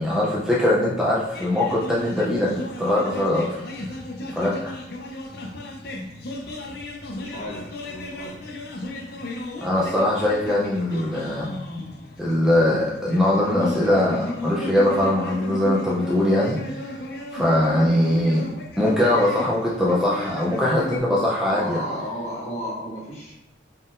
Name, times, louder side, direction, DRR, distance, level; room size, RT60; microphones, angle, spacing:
voice 1, 0.0-2.5 2.8-3.6 4.3-4.8 9.6-11.5 12.2-16.9 17.3-18.5 18.8-21.8, left 1 dB, 5° right, -6 dB, 0.5 m, -21 dB
sound 1, 1.3-21.0, left 1 dB, 55° left, 0.6 m, -35 dB
voice 2, 7.2-8.5 21.5-23.3, equal, 35° left, -5 dB, 1.2 m, -33 dB
4.2 x 3.6 x 2.5 m, 0.92 s
head